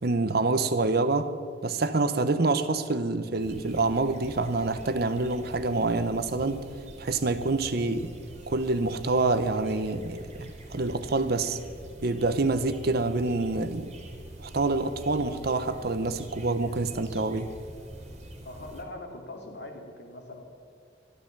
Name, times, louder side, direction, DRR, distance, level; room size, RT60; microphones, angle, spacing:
voice 1, 0.0-1.3 1.6-6.6 7.0-8.1 8.5-11.6 12.0-13.9 14.4-17.5, right 3 dB, 60° right, 0.8 m, -27 dB
sound 1, 3.4-18.8, right 1 dB, 40° right, 2.4 m, -45 dB
voice 2, 18.4-20.4, left 2 dB, 70° left, 2.3 m, -42 dB
12.5 x 12.0 x 7.3 m
head